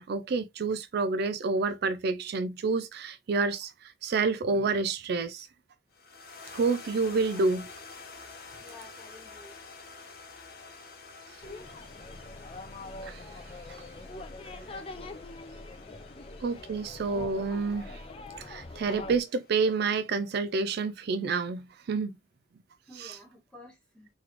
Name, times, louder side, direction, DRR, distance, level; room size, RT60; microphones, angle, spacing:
voice 1, 0.0-5.5 6.5-7.6 13.0-13.3 13.7-13.8 16.4-18.0 18.4-22.1 23.0-23.1, right 4 dB, 55° right, 0.4 m, -29 dB
sound 1, 5.9-20.4, left 4 dB, 55° left, 1.0 m, -50 dB
voice 2, 7.0-7.4 8.6-9.6 18.3-18.6 22.8-24.1, left 2 dB, 5° left, 1.6 m, -52 dB
sound 2, 11.4-19.2, left 2 dB, 30° left, 0.5 m, -43 dB
3.9 x 3.1 x 2.9 m
head